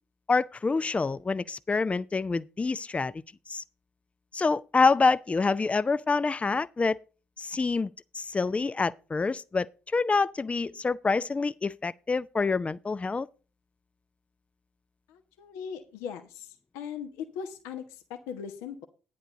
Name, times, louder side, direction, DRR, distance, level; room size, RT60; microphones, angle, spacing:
voice 1, 0.3-3.1 3.5-3.6 4.3-7.0 7.4-13.3, left 4 dB, 25° left, 0.5 m, -27 dB
voice 2, 15.1-18.8, left 7 dB, 70° left, 0.9 m, -39 dB
10.5 x 10.0 x 3.9 m
figure-of-eight pair, 40°, 5 cm